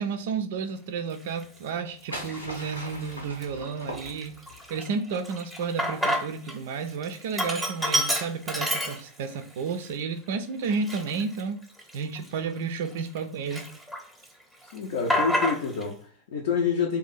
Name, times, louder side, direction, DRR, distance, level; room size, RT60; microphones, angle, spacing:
voice 1, 0.0-4.3 4.7-11.6 11.9-13.6, right 5 dB, 55° right, 0.4 m, -32 dB
Sink (filling or washing), 1.3-1.4 2.1-2.6 3.0-3.1 3.4-6.6 6.9-9.4 9.9-10.0 10.6-13.2 13.5-14.3 14.5-15.9, equal, ahead, 0.8 m, -29 dB
sound 1, 1.6-4.6, equal, 90° left, 1.1 m, -40 dB
voice 2, 14.6-17.0, left 6 dB, 60° left, 0.5 m, -28 dB
2.7 x 2.6 x 3.9 m
figure-of-eight pair, 90°, 0 cm